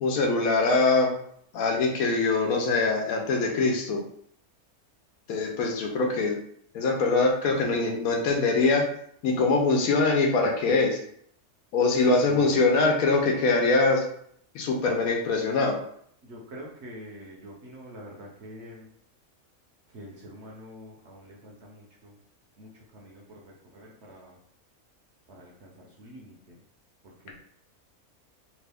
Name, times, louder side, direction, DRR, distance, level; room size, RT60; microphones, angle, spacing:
voice 1, 0.0-1.2 1.5-4.0 5.3-6.4 6.7-8.8 9.2-11.0 11.7-14.0 14.5-15.8, left 3 dB, 75° left, 1 dB, 1.1 m, -23 dB
voice 2, 12.0-12.5 16.2-18.9 19.9-22.2 22.6-24.4 25.3-26.6 27.0-27.4, equal, 55° right, -2 dB, 0.8 m, -45 dB
3.0 x 2.4 x 3.4 m, 0.66 s
omnidirectional pair, 1.5 m